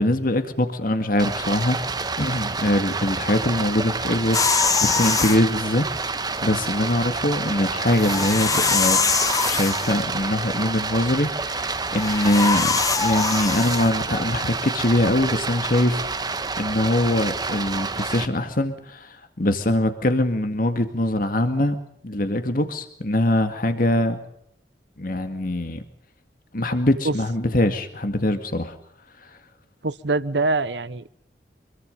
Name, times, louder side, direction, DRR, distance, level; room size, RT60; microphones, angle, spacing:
voice 1, 0.0-1.8 2.2-9.0 9.4-21.8 22.0-24.2 25.0-25.8 26.5-28.8 29.2-29.3, left 1 dB, 55° left, 7 dB, 2.0 m, -23 dB
Stream, 1.2-18.3, right 4 dB, 25° right, 1.4 m, -28 dB
sound 1, 4.3-5.4 7.9-10.0 11.9-13.9, left 5 dB, 20° left, 1.1 m, -23 dB
voice 2, 29.8-31.1, right 3 dB, 85° right, 15 dB, 1.0 m, -24 dB
25.5 x 22.5 x 5.4 m, 0.70 s
head